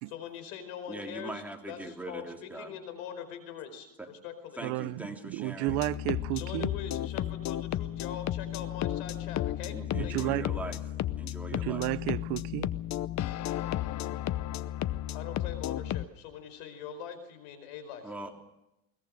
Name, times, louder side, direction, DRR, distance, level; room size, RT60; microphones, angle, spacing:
voice 1, 0.1-4.6 6.3-9.8 10.0-10.3 15.1-18.1, left 8 dB, 90° left, 5.0 m, -42 dB
voice 2, 0.9-2.7 4.0-4.1 4.6-5.8 9.6-10.8 11.1-11.9 18.0-18.3, right 1 dB, 5° right, 3.2 m, -41 dB
voice 3, 4.6-6.7 9.9-10.5 11.5-12.7, right 20 dB, 75° right, 0.8 m, -32 dB
sound 1, 5.7-16.0, left 13 dB, 45° left, 0.8 m, -33 dB
22.0 x 20.0 x 6.6 m
supercardioid pair, 115°, 40 cm